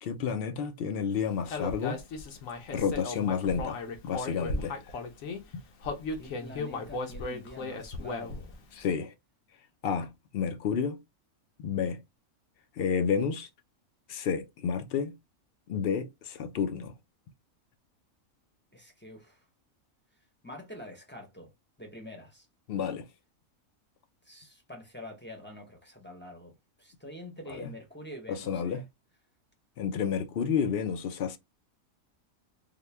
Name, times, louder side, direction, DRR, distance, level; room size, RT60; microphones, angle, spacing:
voice 1, 0.0-2.0 2.7-4.8 8.7-9.1 9.8-11.0 11.6-12.0 12.8-13.5 14.1-15.1 15.7-16.9 22.7-23.1 27.5-27.7 28.3-28.9 29.8-31.4, left 7 dB, 60° left, 0.6 m, -30 dB
Human voice, 1.5-5.4 5.8-8.5, left 3 dB, 75° left, 1.2 m, -36 dB
voice 2, 6.2-8.6 18.7-19.4 20.4-21.5 21.8-22.5 24.2-26.5 26.8-28.8, left 1 dB, 10° left, 0.7 m, -46 dB
3.8 x 2.2 x 3.3 m
omnidirectional pair, 1.4 m